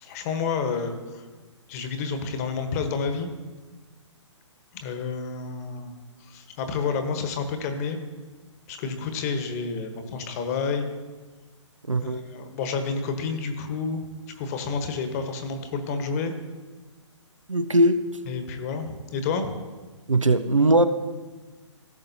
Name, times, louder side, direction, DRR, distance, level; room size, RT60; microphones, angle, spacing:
voice 1, 0.0-1.2 1.7-3.3 4.7-5.9 6.2-8.0 8.7-10.8 12.0-14.0 14.3-16.3 18.3-19.5, left 5 dB, 30° left, 7 dB, 1.2 m, -29 dB
voice 2, 11.9-12.2 17.5-18.0 20.1-20.9, right 1 dB, 90° right, 11 dB, 0.7 m, -20 dB
17.0 x 7.2 x 2.8 m, 1.3 s
figure-of-eight pair, 130°, 16 cm